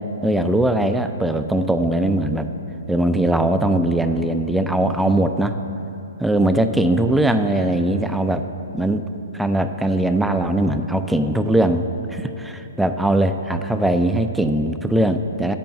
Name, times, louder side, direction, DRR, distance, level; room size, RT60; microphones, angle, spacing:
voice 1, 0.2-2.5 2.9-5.6 6.2-8.5 8.7-9.0 9.3-15.5, right 1 dB, 5° right, 8 dB, 0.4 m, -20 dB
9.2 x 5.2 x 7.9 m, 2.9 s
hypercardioid pair, 135°, 0 cm